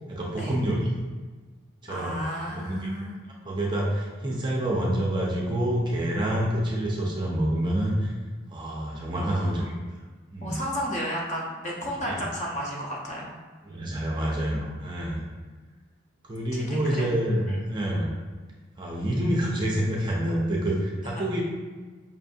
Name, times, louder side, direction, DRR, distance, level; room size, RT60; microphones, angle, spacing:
voice 1, 0.1-0.9 1.8-2.9 3.4-8.1 8.5-9.7 10.3-10.6 12.1-12.2 13.6-15.2 16.3-18.1 18.8-21.4, right 1 dB, 25° right, -3 dB, 0.5 m, -27 dB
voice 2, 1.9-3.1 9.2-9.7 10.4-13.3 16.5-17.1 17.5-17.6 21.2-21.3, equal, 35° left, -3 dB, 0.7 m, -33 dB
5.5 x 2.5 x 2.6 m, 1.4 s
head